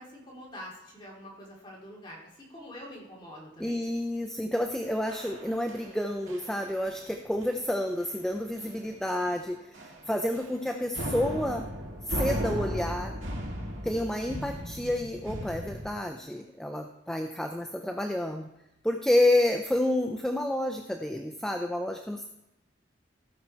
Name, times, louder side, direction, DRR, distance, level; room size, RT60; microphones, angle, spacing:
voice 1, 0.0-3.9, equal, 25° left, -4 dB, 2.9 m, -45 dB
voice 2, 3.6-11.7 12.1-13.1 13.8-18.5 18.8-22.2, left 1 dB, 5° left, 4 dB, 0.5 m, -29 dB
sound 1, 5.1-6.0 6.3-6.6 6.8-7.1 7.4-7.6 8.0-8.1 8.6-8.9 9.2-9.3 9.7-10.6 10.9-15.9, equal, 85° right, 2.1 m, -36 dB
17.0 x 5.8 x 4.4 m, 0.92 s
head